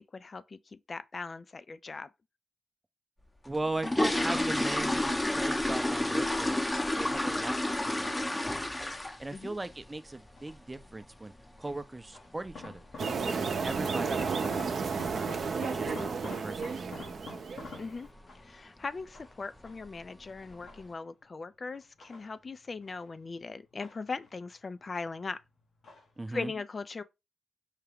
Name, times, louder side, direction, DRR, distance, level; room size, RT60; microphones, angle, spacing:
voice 1, 0.0-2.1 9.3-9.6 17.8-18.1 18.4-25.4 26.3-27.0, left 4 dB, 50° left, 0.3 m, -39 dB
voice 2, 3.4-6.6 6.9-8.7 9.2-11.3 11.6-12.8 13.2-15.3 15.7-17.0 26.2-26.5, right 2 dB, 25° right, 0.5 m, -39 dB
sound 1, 3.5-9.4 9.6-9.9 10.3-10.4 10.7-10.9 11.3-11.5 11.7-11.8 12.4-12.5 12.8-12.9 13.5-13.8 14.0-14.1 14.5-14.8 15.1-15.2 15.6-15.7 16.3-16.6 17.0-17.3 17.6-17.7 18.2-18.3 19.0-19.2 19.6-20.1 20.5-20.6, left 1 dB, 20° left, 0.6 m, -30 dB
sound 2, 10.4-10.8 11.6-13.5 13.8-18.6 19.1-20.0 20.4-21.2 21.7-23.1 23.4-24.5 24.8-25.4 25.8-26.2 26.5-26.6, left 3 dB, 75° left, 1.3 m, -47 dB
sound 3, 13.0-17.9, right 5 dB, 70° right, 0.6 m, -32 dB
4.8 x 2.2 x 3.4 m
supercardioid pair, 45°, 0 cm